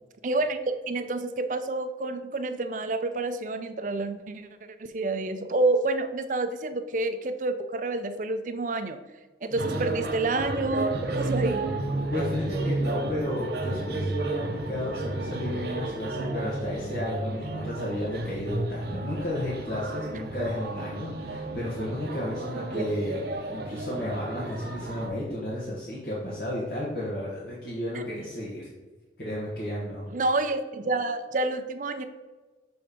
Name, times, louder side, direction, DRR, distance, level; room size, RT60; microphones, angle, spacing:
voice 1, 0.2-4.5 4.8-9.0 9.4-11.7 22.7-22.8 27.9-28.1 30.1-32.0, right 2 dB, 45° right, 9 dB, 0.5 m, -28 dB
voice 2, 9.5-9.9 12.1-28.7 29.2-30.1, left 1 dB, 60° left, -7 dB, 1.4 m, -33 dB
sound 1, 9.6-25.1, right 2 dB, 65° right, 0.8 m, -32 dB
6.9 x 3.3 x 5.1 m, 1.2 s
head